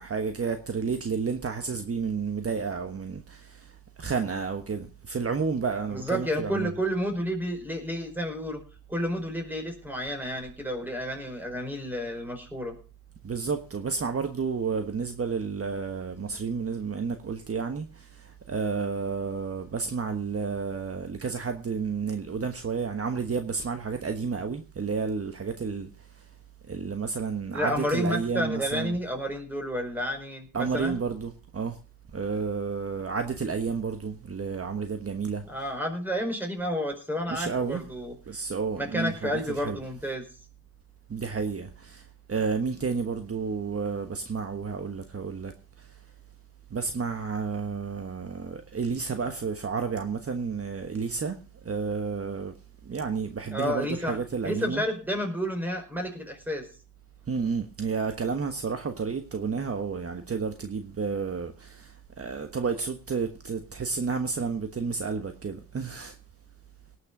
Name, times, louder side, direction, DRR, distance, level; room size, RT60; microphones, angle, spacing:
voice 1, 0.0-6.7 13.2-26.3 26.7-29.0 30.5-31.8 32.1-35.4 37.3-37.8 38.3-39.8 41.1-46.0 46.7-52.5 52.8-54.8 57.3-66.2, right 5 dB, 45° right, 1.3 m, -31 dB
voice 2, 5.9-8.6 8.9-12.7 27.5-31.0 35.5-38.1 38.7-40.2 53.5-54.2 54.4-56.7, equal, 5° right, 4.8 m, -30 dB
18.5 x 6.5 x 6.0 m
wide cardioid pair, 105°, 33 cm